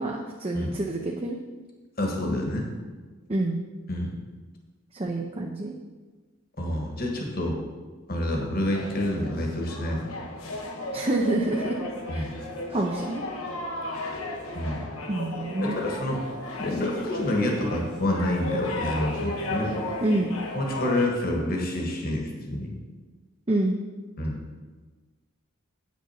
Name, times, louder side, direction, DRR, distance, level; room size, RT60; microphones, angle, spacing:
voice 1, 0.0-1.4 3.3-3.6 4.9-5.7 10.9-11.8 12.1-12.3 12.7-13.2 15.1-15.7 20.0-20.3 23.5-23.8, right 2 dB, 25° right, 1 dB, 0.6 m, -27 dB
voice 2, 2.0-2.7 3.9-4.2 6.6-7.6 8.1-10.1 12.1-12.3 13.9-14.1 14.5-14.8 15.6-16.2 16.6-19.8 20.5-22.7 24.2-24.4, left 1 dB, 45° left, 1 dB, 1.6 m, -28 dB
sound 1, 8.7-21.1, left 1 dB, 80° left, 1.3 m, -34 dB
8.7 x 6.2 x 5.7 m, 1.3 s
head